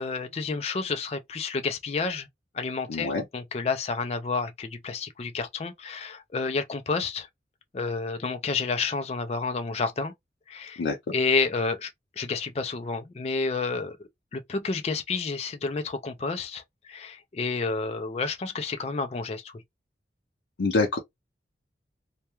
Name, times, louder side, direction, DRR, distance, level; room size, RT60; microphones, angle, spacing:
voice 1, 0.0-2.3 2.5-7.3 7.7-10.1 10.5-10.8 11.1-11.9 12.2-19.6, left 4 dB, 35° left, 0.4 m, -30 dB
voice 2, 2.9-3.2 10.8-11.0 20.6-21.0, left 3 dB, 90° left, 0.5 m, -25 dB
2.2 x 2.2 x 2.9 m
head